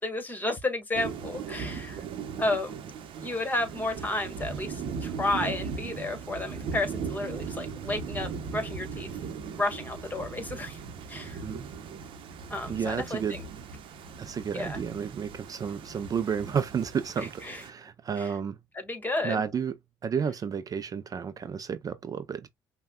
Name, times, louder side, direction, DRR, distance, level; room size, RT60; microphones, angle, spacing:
voice 1, 0.0-2.0 2.4-2.8 3.2-10.8 11.1-11.4 12.5-13.5 14.5-14.8 17.2-17.6 18.2-18.3 18.7-19.4, left 2 dB, 20° left, 1.5 m, -32 dB
Thunder / Rain, 0.9-17.7, right 6 dB, 65° right, 0.8 m, -38 dB
voice 2, 12.7-13.4 14.2-18.6 19.2-19.7 20.0-22.5, right 7 dB, 40° right, 0.4 m, -31 dB
5.5 x 2.2 x 2.2 m
supercardioid pair, 70°, 9 cm